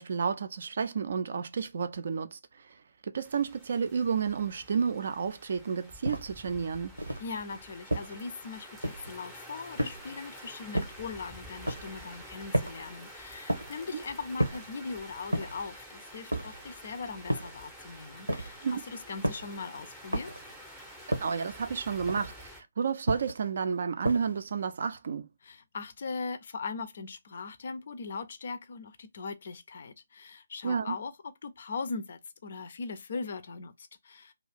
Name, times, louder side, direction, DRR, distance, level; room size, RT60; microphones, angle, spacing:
voice 1, 0.0-2.7 3.0-6.9 13.9-14.0 18.6-18.8 21.2-25.3 30.6-31.0, right 6 dB, 45° right, 0.4 m, -31 dB
sound 1, 3.2-22.6, equal, 5° right, 0.6 m, -49 dB
sound 2, 6.0-6.4 7.0-7.3 7.9-8.3 8.8-9.2 9.8-10.2 10.7-11.1 11.6-12.0 12.5-12.9 13.5-13.9 14.4-14.8 15.3-15.7 16.3-16.7 17.3-17.7 18.3-18.7 19.2-19.6 20.1-20.5 21.1-21.5 22.1-22.5 23.1-23.5 24.0-24.5, right 1 dB, 80° right, 0.8 m, -33 dB
voice 2, 7.2-20.3 25.4-34.3, left 4 dB, 45° left, 0.4 m, -40 dB
2.4 x 2.4 x 3.3 m
figure-of-eight pair, 140°, 0 cm